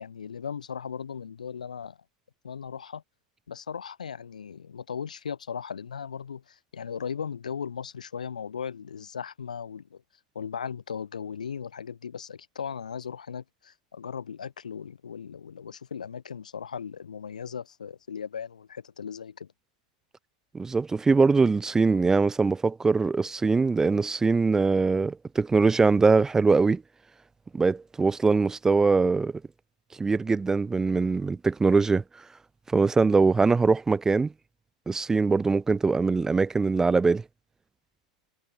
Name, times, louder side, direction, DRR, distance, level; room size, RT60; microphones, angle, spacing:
voice 1, 0.0-2.0 2.4-3.0 3.5-10.0 10.3-19.5, left 7 dB, 90° left, 0.8 m, -37 dB
voice 2, 20.5-26.8 27.5-29.3 30.0-32.0 32.7-34.3 34.9-37.2, right 4 dB, 15° right, 0.4 m, -22 dB
hypercardioid pair, 100°, 4 cm